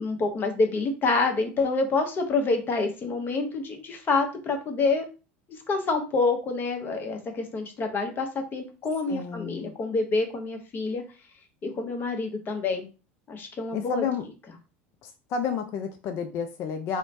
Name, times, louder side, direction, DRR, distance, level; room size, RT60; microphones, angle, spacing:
voice 1, 0.0-5.1 5.7-11.0 11.6-12.9 13.3-14.0, left 3 dB, 35° left, 4 dB, 0.8 m, -27 dB
voice 2, 9.1-9.7 13.7-14.3 15.0-17.0, left 6 dB, 50° left, 6 dB, 0.4 m, -31 dB
3.0 x 2.1 x 2.6 m, 0.33 s
hypercardioid pair, 85°, 6 cm